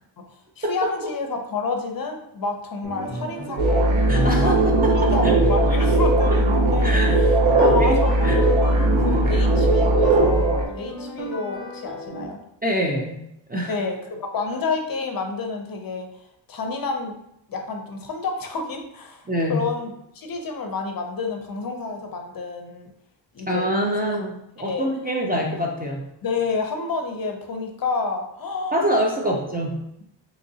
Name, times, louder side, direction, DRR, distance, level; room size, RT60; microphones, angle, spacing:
voice 1, 0.6-4.0 4.4-4.6 4.9-12.4 13.7-16.1 16.5-17.2 17.5-22.9 23.3-23.7 24.1-24.2 24.6-24.9 26.2-29.4, left 4 dB, 50° left, 4 dB, 0.5 m, -29 dB
sound 1, 2.8-12.2, equal, ahead, 0.8 m, -35 dB
sound 2, 3.6-10.7, right 2 dB, 85° right, 0.6 m, -18 dB
voice 2, 4.1-5.3 5.6-5.7 6.3-6.4 6.8-7.9 8.2-8.4 12.6-13.7 19.3-19.7 23.5-24.3 24.6-26.1 28.7-29.8, equal, 20° right, -1 dB, 0.4 m, -25 dB
3.7 x 3.0 x 2.7 m, 0.80 s
wide cardioid pair, 145°, 46 cm